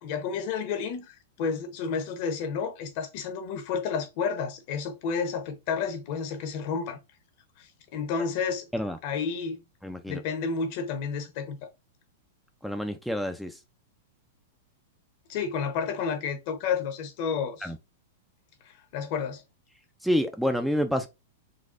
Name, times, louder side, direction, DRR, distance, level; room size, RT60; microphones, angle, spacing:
voice 1, 0.0-7.0 7.6-8.7 9.0-9.6 10.1-11.6 15.3-17.7 18.6-19.4, left 6 dB, 50° left, 0.8 m, -31 dB
voice 2, 9.8-10.2 12.6-13.6 17.6-17.8 20.0-21.1, equal, ahead, 0.3 m, -28 dB
4.0 x 2.3 x 2.4 m
figure-of-eight pair, 105°, 0 cm